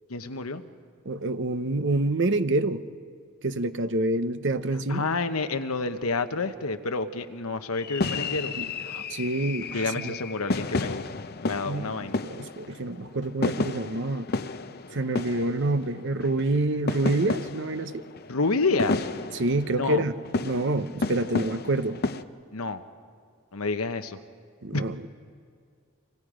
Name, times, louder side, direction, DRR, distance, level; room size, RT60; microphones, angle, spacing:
voice 1, 0.1-0.6 4.9-8.5 8.8-9.0 9.7-11.0 11.4-12.2 18.3-19.1 19.7-20.0 22.5-22.8 23.5-24.2 24.7-24.8, left 3 dB, 85° left, 8 dB, 1.1 m, -29 dB
voice 2, 1.0-2.8 3.4-5.1 8.5-8.7 9.1-10.2 11.7-14.3 14.9-18.0 19.3-22.0 24.6-25.1, right 2 dB, 60° right, 11 dB, 0.9 m, -27 dB
sound 1, 7.7-22.2, left 3 dB, 45° left, 0.7 m, -32 dB
28.5 x 26.0 x 5.1 m, 2.2 s
head